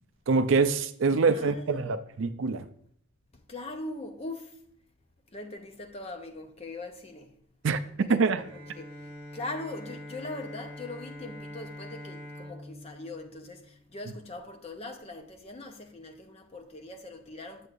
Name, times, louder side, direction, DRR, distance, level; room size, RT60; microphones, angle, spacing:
voice 1, 0.3-2.7 7.6-8.4, right 4 dB, 55° right, 0.4 m, -25 dB
voice 2, 1.1-2.0 3.5-4.6 5.3-7.3 8.0-8.9 9.3-17.7, left 2 dB, 25° left, 0.6 m, -41 dB
Bowed string instrument, 8.4-14.3, left 1 dB, 25° right, 2.3 m, -44 dB
8.0 x 7.7 x 2.5 m
head